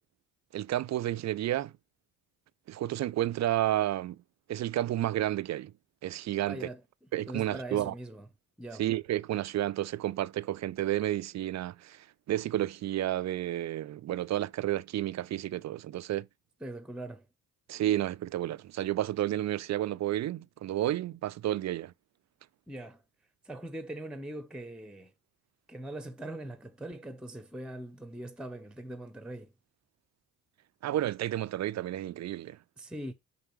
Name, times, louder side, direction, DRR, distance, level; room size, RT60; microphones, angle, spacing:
voice 1, 0.5-1.7 2.7-4.2 4.5-5.7 6.0-6.7 7.1-7.9 8.8-16.3 17.7-21.9 30.8-32.6, right 13 dB, 40° right, 0.4 m, -31 dB
voice 2, 6.5-6.8 7.3-8.3 8.6-8.9 16.6-17.3 22.7-23.0 23.4-25.1 25.7-29.5 32.8-33.1, right 1 dB, ahead, 0.9 m, -41 dB
6.4 x 5.6 x 3.1 m
hypercardioid pair, 45°, 44 cm